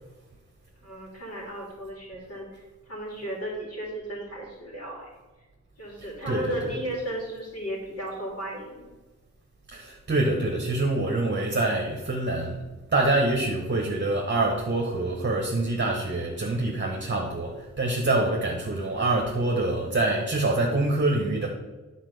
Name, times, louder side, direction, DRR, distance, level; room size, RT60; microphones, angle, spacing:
voice 1, 0.8-5.1 5.8-8.8, right 1 dB, 50° left, -3 dB, 3.1 m, -35 dB
voice 2, 6.0-6.8 9.7-12.6 12.9-21.5, right 2 dB, 40° right, 1 dB, 1.2 m, -26 dB
10.0 x 4.2 x 6.7 m, 1.2 s
wide cardioid pair, 120°, 30 cm